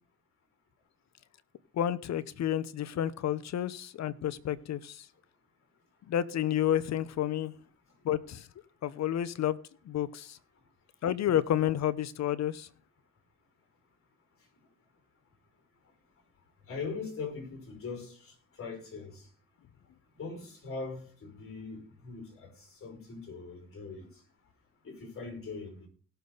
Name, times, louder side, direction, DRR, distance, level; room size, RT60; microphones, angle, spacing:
voice 1, 1.7-5.1 6.1-7.5 8.0-8.5 8.8-9.6 9.8-10.4 11.0-12.7, left 11 dB, 60° left, 0.9 m, -30 dB
voice 2, 16.7-19.3 20.2-24.1 24.8-25.9, left 4 dB, 45° left, 6.0 m, -41 dB
17.5 x 6.9 x 4.1 m
cardioid pair, 90°, 30 cm